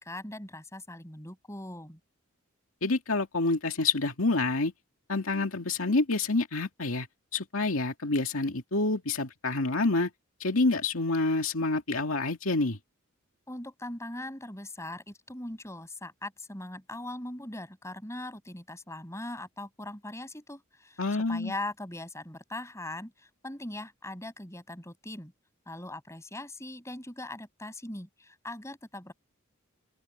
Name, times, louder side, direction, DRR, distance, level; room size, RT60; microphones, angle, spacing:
voice 1, 0.0-2.0 13.5-21.0 21.3-25.3 25.7-29.1, left 1 dB, 15° left, 6.8 m, -40 dB
voice 2, 2.8-4.7 5.1-7.1 7.3-10.1 10.4-12.8 21.0-21.5, left 3 dB, 75° left, 2.3 m, -27 dB
open air
head